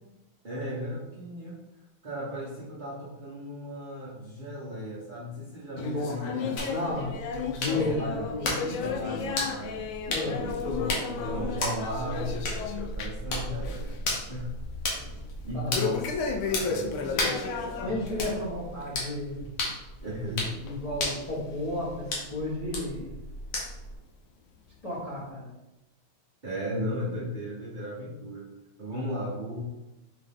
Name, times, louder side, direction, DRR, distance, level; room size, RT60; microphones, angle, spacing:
voice 1, 0.4-1.6 2.0-6.7 7.7-8.3 8.7-9.9 10.2-12.4 12.9-14.5 15.0-15.2 15.4-16.2 16.5-18.0 20.0-20.6 26.4-28.5 28.8-29.6, equal, 55° right, -8 dB, 0.5 m, -36 dB
sound 1, 5.8-13.3 13.6-14.0 14.3-14.4 15.7-18.4 18.8-19.0 19.7-19.8 20.7-20.8 21.6-21.7, left 5 dB, 85° left, 1.4 m, -33 dB
voice 2, 5.8-6.1 6.4-7.1 7.6-8.6 10.1-10.4 15.5-15.9 17.8-19.4 20.6-23.1 24.8-25.5, left 2 dB, 30° left, -7 dB, 0.7 m, -33 dB
sound 2, 6.6-24.0, left 1 dB, 60° left, 1.5 m, -35 dB
4.7 x 2.8 x 3.6 m, 0.99 s
omnidirectional pair, 2.3 m